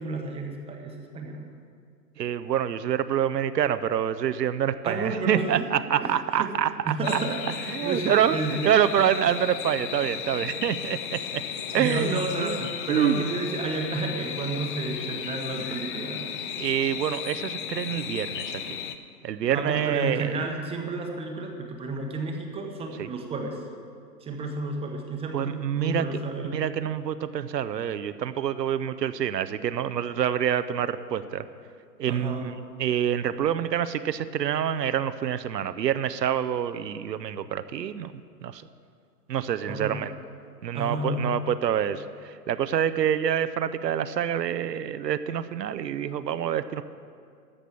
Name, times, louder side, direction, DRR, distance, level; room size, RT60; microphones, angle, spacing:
voice 1, 0.0-1.5 4.8-5.7 6.0-6.5 6.9-7.4 7.8-8.8 11.7-16.3 19.5-23.6 24.2-26.6 32.1-32.5 39.7-40.0 40.7-41.5, right 2 dB, 10° right, 2 dB, 0.9 m, -31 dB
voice 2, 2.2-7.2 7.7-11.4 11.7-12.6 12.9-13.2 16.6-18.8 19.2-20.4 23.0-23.1 25.3-26.0 26.5-31.4 32.0-38.1 38.4-38.6 39.3-40.1 40.6-46.8, right 9 dB, 80° right, 12 dB, 0.7 m, -27 dB
sound 1, 7.0-19.0, left 8 dB, 35° left, 0.6 m, -35 dB
14.0 x 6.1 x 8.5 m, 2.2 s
hypercardioid pair, 130°, 49 cm